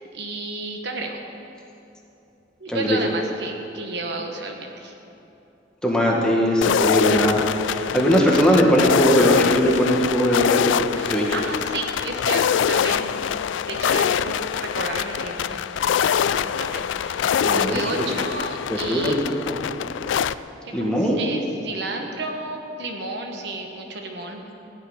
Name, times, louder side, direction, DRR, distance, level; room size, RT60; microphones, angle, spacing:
voice 1, 0.1-1.2 2.6-4.9 10.9-13.1 13.6-19.1 20.6-24.4, right 2 dB, 60° right, 3 dB, 1.2 m, -32 dB
voice 2, 5.8-11.3 17.4-18.0 18.7-19.1 19.4-19.7 20.7-21.2, equal, 5° left, -3 dB, 1.7 m, -20 dB
sound 1, 6.6-20.3, left 8 dB, 80° left, 0.3 m, -24 dB
15.5 x 5.9 x 9.7 m, 2.9 s
head